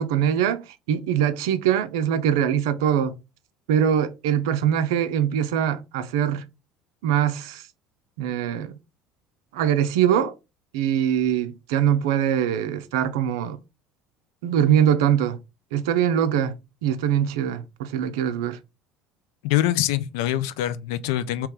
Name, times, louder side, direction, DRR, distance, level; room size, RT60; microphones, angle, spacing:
voice 1, 0.0-3.2 3.7-6.4 7.0-7.6 8.2-8.7 9.5-10.3 10.7-13.6 14.4-15.4 15.7-16.5 16.8-18.6, right 9 dB, 75° right, 0.4 m, -22 dB
voice 2, 19.4-21.5, left 13 dB, 70° left, 0.4 m, -24 dB
3.2 x 2.9 x 3.6 m
hypercardioid pair, 65°, 2 cm